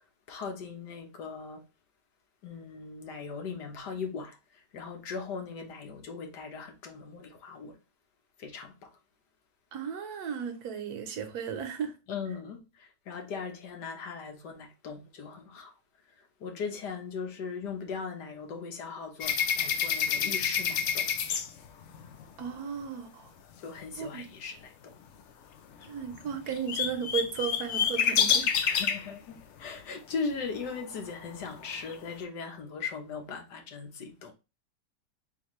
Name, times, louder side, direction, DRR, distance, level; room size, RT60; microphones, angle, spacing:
voice 1, 0.3-1.6 2.4-7.8 8.4-8.9 12.1-15.7 16.4-21.1 23.6-24.9 28.4-34.3, left 5 dB, 85° left, 1.6 m, -39 dB
voice 2, 9.7-11.9 22.4-23.3 24.0-24.3 25.9-28.5, right 7 dB, 75° right, 1.3 m, -35 dB
sound 1, 19.2-22.2 25.8-25.9 26.1-29.1 30.8-30.9 31.3-32.0, left 7 dB, 65° left, 0.7 m, -28 dB
4.2 x 3.6 x 3.0 m
omnidirectional pair, 1.7 m